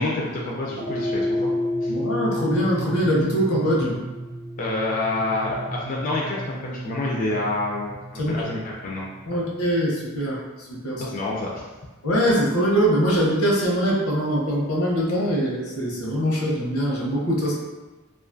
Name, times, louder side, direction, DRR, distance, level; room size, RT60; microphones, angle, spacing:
voice 1, 0.0-1.5 1.8-1.9 4.6-9.0 9.3-9.4 11.0-11.7, left 2 dB, 40° left, -4 dB, 0.3 m, -28 dB
Wind Chime Gamelan Gong A, 0.7-9.2, equal, 75° right, 0.7 m, -30 dB
voice 2, 1.9-4.0 8.2-8.4 9.3-11.0 12.0-17.5, equal, 85° left, -4 dB, 0.7 m, -23 dB
2.5 x 2.3 x 2.5 m, 1.2 s
head